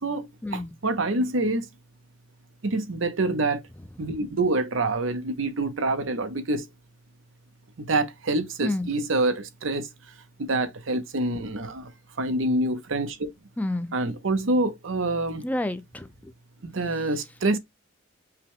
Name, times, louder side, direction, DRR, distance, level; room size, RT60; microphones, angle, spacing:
voice 1, 0.0-1.7 2.6-3.6 4.0-6.7 7.8-9.9 10.4-11.9 12.2-13.3 13.9-15.5 16.6-17.6, right 2 dB, 80° right, 0.8 m, -26 dB
voice 2, 13.6-13.9 15.4-16.3, left 1 dB, 10° left, 0.5 m, -29 dB
5.7 x 2.2 x 3.5 m
head